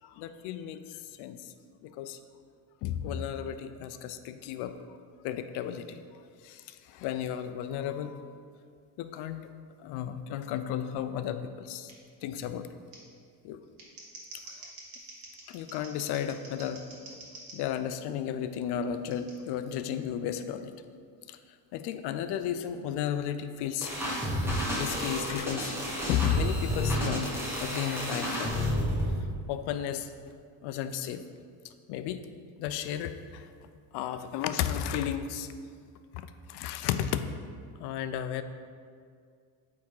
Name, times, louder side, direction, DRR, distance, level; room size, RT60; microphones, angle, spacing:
voice 1, 0.0-1.4 1.8-2.2 2.8-4.7 5.2-6.0 6.4-8.2 9.0-9.5 9.8-11.9 12.2-12.7 13.4-13.6 15.5-16.8 17.5-20.7 21.3-21.4 21.7-23.9 24.8-25.7 26.1-27.3 27.6-28.7 29.5-30.1 30.6-31.2 31.9-32.2 32.6-33.5 33.9-35.5 36.5-37.3 37.8-38.4, left 9 dB, 65° left, 10 dB, 0.6 m, -33 dB
Scissors, 11.9-12.0 12.9-13.0 13.6-17.6 19.1-19.3, right 3 dB, 55° right, 1.7 m, -47 dB
sound 1, 23.8-29.1, equal, 5° right, 1.2 m, -31 dB
8.4 x 3.7 x 4.7 m, 2.2 s
cardioid pair, 150°, 42 cm